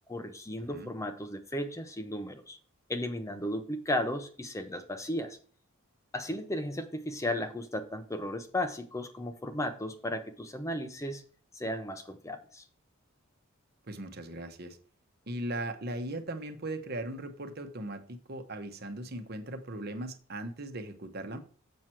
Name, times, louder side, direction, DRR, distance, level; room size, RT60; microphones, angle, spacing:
voice 1, 0.1-2.6 2.9-5.4 6.1-11.2 11.5-12.6, left 1 dB, 15° left, 8 dB, 0.6 m, -35 dB
voice 2, 13.9-14.8 15.3-21.4, right 1 dB, 50° right, 7 dB, 1.1 m, -38 dB
7.5 x 6.1 x 4.4 m, 0.42 s
head